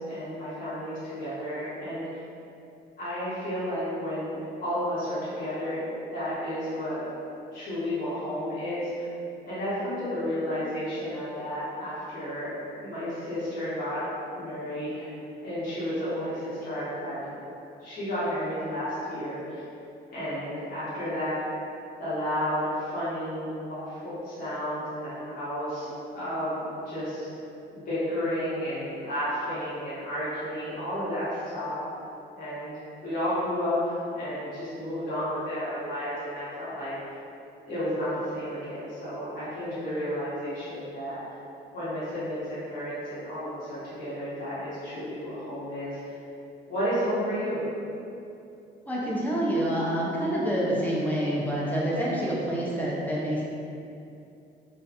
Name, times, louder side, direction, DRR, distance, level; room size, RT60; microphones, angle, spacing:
voice 1, 0.0-2.0 3.0-5.9 6.1-7.1 7.5-9.1 9.5-14.0 14.3-15.1 15.4-17.3 17.8-19.6 20.1-21.4 22.0-27.3 27.7-31.8 32.3-32.7 33.0-36.9 37.6-41.2 41.7-46.1 46.7-47.6, equal, 55° left, -12 dB, 1.0 m, -32 dB
voice 2, 48.9-53.4, right 1 dB, 10° left, -6 dB, 0.5 m, -27 dB
2.6 x 2.1 x 2.5 m, 2.7 s
cardioid pair, 120°, 18 cm